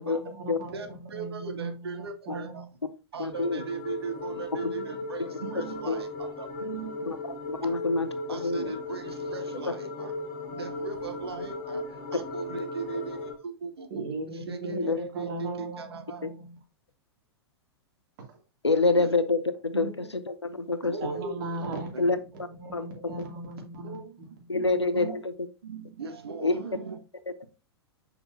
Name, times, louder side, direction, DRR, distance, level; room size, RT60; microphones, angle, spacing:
voice 1, 0.0-2.7 13.9-16.6 18.3-18.4 20.8-24.8, right 2 dB, 50° right, 2.5 m, -38 dB
voice 2, 0.7-2.6 3.1-7.2 7.6-7.8 8.3-10.2 10.5-14.0 14.3-16.3 19.0-19.1 19.7-20.1 20.9-22.0 22.3-22.5 23.8-24.2 24.5-25.2 25.6-27.0, right 5 dB, 70° right, 0.9 m, -38 dB
voice 3, 3.2-3.6 5.9-6.0 7.1-7.2 7.5-8.8 14.7-15.0 18.6-19.9 20.3-20.9 22.0-22.2 22.7-23.2 24.5-25.3 26.4-26.6, left 3 dB, 85° left, 0.7 m, -26 dB
sound 1, 3.3-13.3, left 2 dB, 50° left, 1.1 m, -36 dB
6.7 x 5.8 x 2.7 m
figure-of-eight pair, 100°, 14 cm